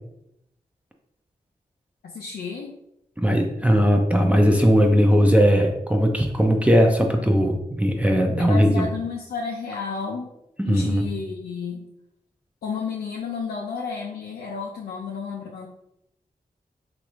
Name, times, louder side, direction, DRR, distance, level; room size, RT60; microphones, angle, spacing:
voice 1, 2.0-2.8 8.4-10.3 10.6-11.9 12.6-15.7, left 5 dB, 85° left, -2 dB, 0.4 m, -32 dB
voice 2, 3.2-8.9 10.6-11.1, equal, 10° right, 2 dB, 0.5 m, -19 dB
3.1 x 2.5 x 3.0 m, 0.83 s
cardioid pair, 40°, 16 cm